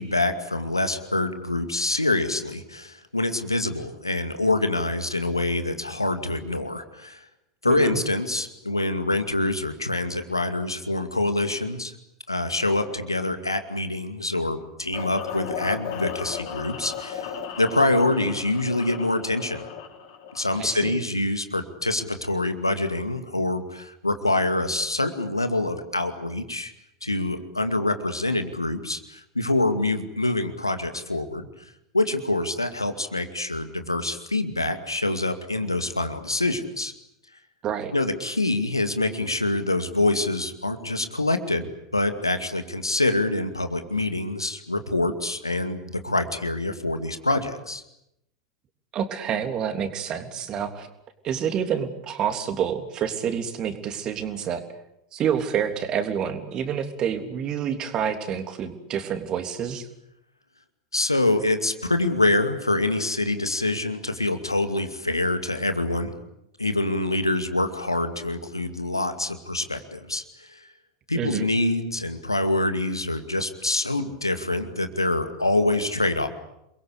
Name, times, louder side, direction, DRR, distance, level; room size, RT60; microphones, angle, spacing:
voice 1, 0.0-7.2 7.6-11.9 12.3-19.7 20.3-26.7 27.0-31.5 31.9-36.9 37.9-47.8 60.9-66.1 66.6-70.7 71.1-76.3, left 2 dB, 85° left, 8 dB, 2.3 m, -25 dB
voice 2, 7.7-8.0 20.6-20.9 37.6-37.9 48.9-50.9 51.2-54.6 55.1-59.9 71.1-71.4, right 8 dB, 35° right, 8 dB, 3.3 m, -28 dB
sound 1, 14.9-20.9, left 8 dB, 55° left, 5.1 m, -36 dB
28.5 x 22.0 x 8.5 m, 0.83 s
figure-of-eight pair, 85°, 2 cm